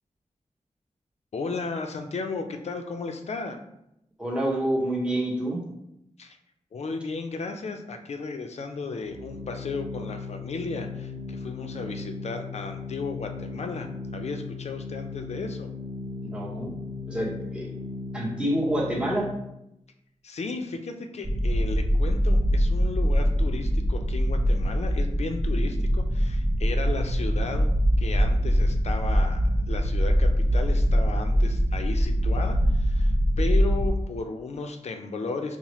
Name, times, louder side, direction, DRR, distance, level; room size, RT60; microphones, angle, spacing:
voice 1, 1.3-3.6 6.2-6.4 6.7-15.7 20.2-27.7 28.0-35.6, left 4 dB, 60° left, 5 dB, 0.5 m, -34 dB
voice 2, 4.2-5.6 16.2-16.7 17.1-17.8 18.1-19.3, right 1 dB, 10° right, -4 dB, 1.1 m, -27 dB
Organ, 8.8-19.6, left 4 dB, 60° right, 1.2 m, -37 dB
sound 1, 21.2-33.9, equal, 30° right, 0.5 m, -23 dB
5.5 x 2.1 x 3.0 m, 0.82 s
wide cardioid pair, 100°, 12 cm